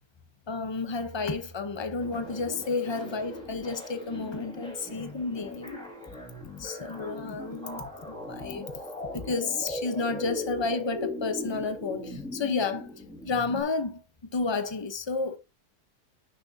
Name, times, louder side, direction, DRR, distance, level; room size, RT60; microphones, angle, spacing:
voice 1, 0.5-5.8 6.6-8.7 9.1-12.9 13.2-14.0 14.3-15.4, left 4 dB, 35° left, 0.4 m, -31 dB
sound 1, 2.0-13.6, left 1 dB, 5° left, 1.9 m, -39 dB
9.4 x 6.1 x 2.7 m
omnidirectional pair, 1.8 m